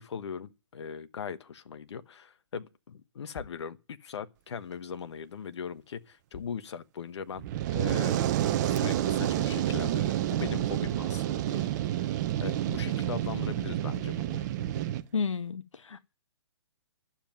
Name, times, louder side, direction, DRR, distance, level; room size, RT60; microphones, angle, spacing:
voice 1, 0.0-7.4 7.7-8.2 8.6-14.5, left 6 dB, 65° left, 1.2 m, -40 dB
sound 1, 2.9-3.0 3.3-3.7 5.3-5.4 6.3-6.7 7.3-7.4 7.9-8.0 9.1-9.4, left 5 dB, 40° left, 4.5 m, -49 dB
Fire, 7.4-15.0, right 12 dB, 40° right, 1.0 m, -29 dB
voice 2, 15.1-16.0, left 5 dB, 90° left, 0.8 m, -32 dB
11.5 x 7.5 x 8.8 m
hypercardioid pair, 140°, 15 cm